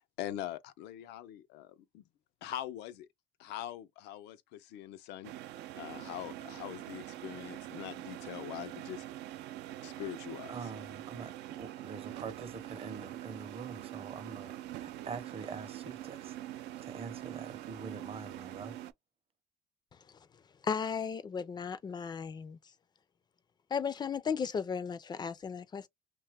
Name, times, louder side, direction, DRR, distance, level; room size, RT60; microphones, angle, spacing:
voice 1, 0.2-2.0 2.4-3.1 3.4-5.3 5.7-9.0 9.8-10.7, left 12 dB, 85° left, 0.5 m, -43 dB
sound 1, 5.2-18.9, right 13 dB, 85° right, 0.4 m, -44 dB
voice 2, 10.5-11.3 11.6-16.3 16.8-18.8, right 5 dB, 35° right, 0.6 m, -44 dB
voice 3, 20.6-22.6 23.7-25.9, left 6 dB, 25° left, 0.3 m, -35 dB
2.8 x 2.3 x 3.3 m
cardioid pair, 110°, 17 cm